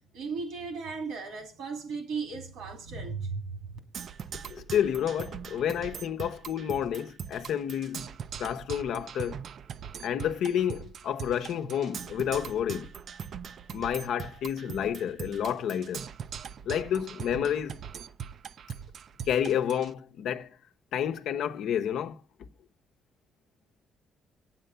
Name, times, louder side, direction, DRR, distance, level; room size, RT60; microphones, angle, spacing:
voice 1, 0.1-3.6, right 4 dB, 85° right, 2.9 m, -36 dB
Percussion, 3.9-19.9, right 7 dB, 60° right, 0.5 m, -41 dB
voice 2, 4.4-9.4 10.0-12.9 13.7-16.1 16.7-17.8 19.3-20.6 20.9-22.2, left 9 dB, 75° left, 0.8 m, -30 dB
9.1 x 7.5 x 6.8 m
cardioid pair, 90°, 0 cm